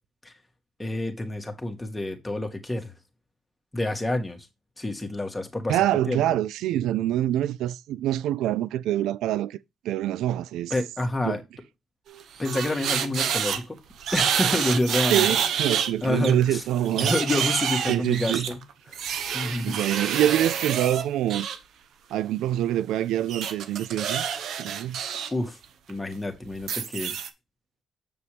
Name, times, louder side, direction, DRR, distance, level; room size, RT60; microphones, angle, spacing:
voice 1, 0.8-2.9 3.7-4.5 4.8-5.8 6.1-6.4 10.7-11.4 12.4-13.8 14.1-15.3 16.0-16.6 16.9-18.6 18.9-19.0 19.3-19.8 25.3-25.6 25.9-27.2, left 1 dB, 15° left, 2.1 m, -28 dB
voice 2, 5.7-9.6 9.8-10.7 11.2-11.4 15.1-17.1 17.9-18.5 19.6-21.5 22.1-24.2 24.6-25.0, right 12 dB, 85° right, 0.4 m, -25 dB
sound 1, 12.1-13.6 14.0-15.9 16.2-21.6 23.3-25.3 25.6-25.9 26.6-27.3, right 8 dB, 70° right, 1.1 m, -27 dB
7.6 x 6.8 x 3.4 m
cardioid pair, 90°, 0 cm